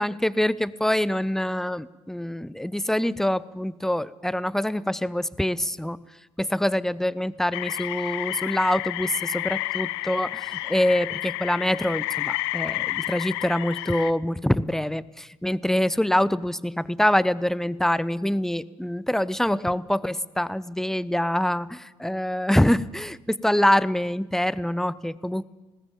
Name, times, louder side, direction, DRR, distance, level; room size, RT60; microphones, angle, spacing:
voice 1, 0.0-6.0 6.4-25.4, left 1 dB, 5° left, 20 dB, 0.6 m, -25 dB
sound 1, 7.5-14.1, left 19 dB, 65° left, 0.6 m, -30 dB
20.5 x 18.5 x 7.4 m, 1.1 s
figure-of-eight pair, 55°, 14 cm